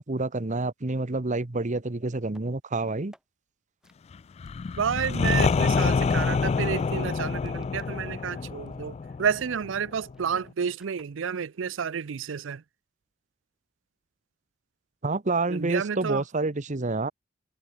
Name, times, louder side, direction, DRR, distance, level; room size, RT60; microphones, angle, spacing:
voice 1, 0.0-3.1 15.0-17.1, right 3 dB, 40° right, 1.0 m, -28 dB
sound 1, 2.2-2.5 2.9-3.2 3.8-3.9 4.4-8.3 8.7-8.9 9.2-11.1, equal, 5° right, 7.7 m, -60 dB
sound 2, 4.4-10.1, left 4 dB, 30° left, 0.3 m, -27 dB
voice 2, 4.8-12.6 15.5-16.2, right 7 dB, 70° right, 0.5 m, -30 dB
head